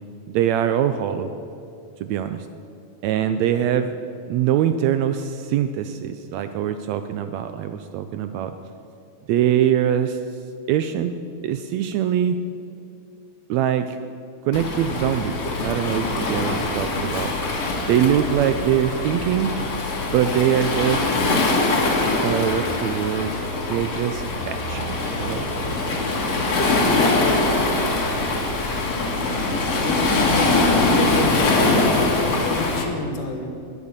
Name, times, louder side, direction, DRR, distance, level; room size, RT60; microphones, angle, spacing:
voice 1, 0.3-1.3 2.0-2.5 3.0-4.0 4.3-8.5 9.3-10.2 10.7-11.2 11.4-12.4 13.5-14.0 14.5-17.3 17.9-19.5 20.0-21.2 22.2-23.3 23.7-25.5, right 10 dB, 80° right, 9 dB, 1.6 m, -23 dB
Waves surf, 14.5-32.8, left 2 dB, 55° left, 2.8 m, -22 dB
voice 2, 29.8-31.4 31.7-33.5, left 3 dB, 85° left, 4 dB, 3.0 m, -30 dB
21.0 x 7.3 x 6.8 m, 2.6 s
omnidirectional pair, 3.5 m